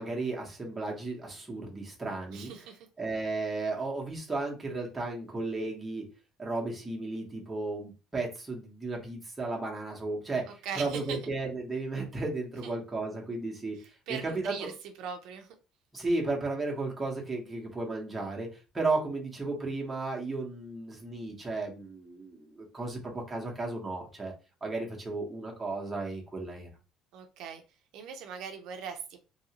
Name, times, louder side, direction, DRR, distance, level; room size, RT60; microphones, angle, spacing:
voice 1, 0.0-2.5 3.0-6.0 6.4-10.5 10.8-13.8 14.1-14.7 15.9-24.3 24.6-26.7, right 3 dB, 10° right, -2 dB, 0.9 m, -34 dB
voice 2, 2.3-2.9 10.6-11.2 12.6-12.7 13.7-15.5 27.1-27.6 27.9-29.2, right 6 dB, 65° right, 5 dB, 0.5 m, -40 dB
2.7 x 2.7 x 2.8 m, 0.31 s
cardioid pair, 160°, 0 cm